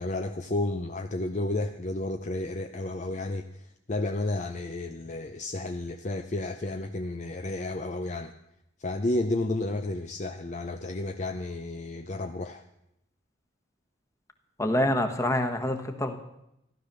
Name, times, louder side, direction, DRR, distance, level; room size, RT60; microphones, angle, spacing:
voice 1, 0.0-8.3 8.8-12.6, left 2 dB, 40° left, 6 dB, 0.6 m, -32 dB
voice 2, 14.6-16.2, left 1 dB, 15° left, 6 dB, 1.4 m, -26 dB
15.0 x 12.0 x 6.8 m, 0.81 s
head